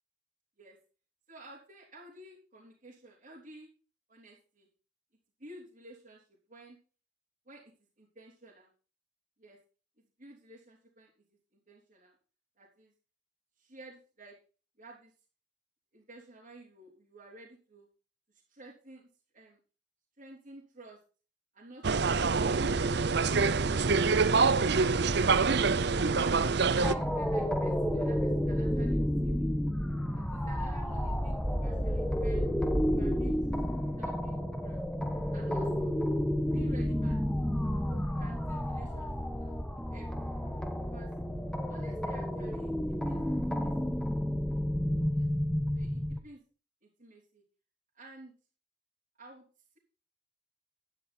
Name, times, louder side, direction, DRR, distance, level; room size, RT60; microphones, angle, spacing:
voice 1, 1.3-3.7 4.1-4.7 5.4-6.2 6.5-6.8 7.5-7.7 8.0-8.7 9.4-9.6 10.2-11.1 11.7-12.1 12.6-12.9 13.6-14.4 14.8-15.1 15.9-17.9 18.5-19.1 19.3-19.6 20.2-21.0 21.5-22.5 24.8-26.0 26.8-29.5 30.1-32.5 32.9-34.9 35.3-36.0 36.5-37.2 37.9-39.5 39.9-40.3 40.9-41.1 41.7-43.9 45.1-45.3 45.7-46.4 46.8-47.4 47.9-48.3 49.2-49.5, right 2 dB, 45° right, -5 dB, 3.7 m, -52 dB
sound 1, 21.8-26.9, right 4 dB, 65° right, 0.7 m, -26 dB
sound 2, 26.8-46.2, equal, 5° left, 1.1 m, -31 dB
11.5 x 11.0 x 4.3 m, 0.37 s
head